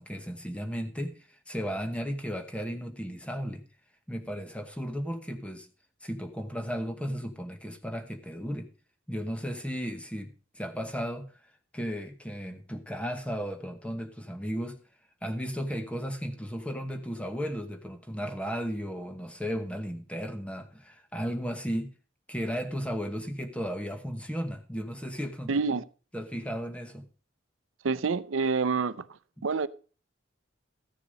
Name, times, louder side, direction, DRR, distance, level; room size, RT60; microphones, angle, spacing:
voice 1, 0.0-3.6 4.1-5.7 6.0-8.7 9.1-11.3 11.7-14.8 15.2-21.9 22.3-25.6 26.1-27.1 29.4-29.5, equal, 5° left, 1.0 m, -35 dB
voice 2, 25.5-25.8 27.8-29.1 29.4-29.7, right 4 dB, 85° right, 0.6 m, -27 dB
13.5 x 6.8 x 5.1 m
head